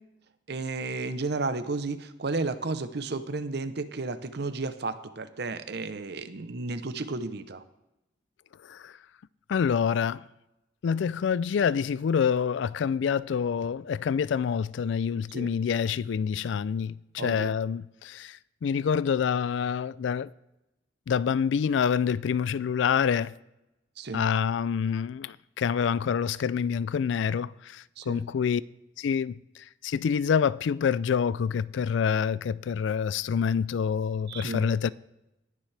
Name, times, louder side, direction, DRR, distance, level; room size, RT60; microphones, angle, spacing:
voice 1, 0.5-7.6 15.3-15.5 17.2-17.5 24.0-24.2 28.0-28.2 34.3-34.7, right 3 dB, 60° right, 0.7 m, -33 dB
voice 2, 9.5-10.2 10.8-20.3 21.1-23.3 24.1-28.6 29.0-29.3 29.8-34.9, left 7 dB, 70° left, 0.3 m, -27 dB
19.5 x 7.3 x 3.3 m
head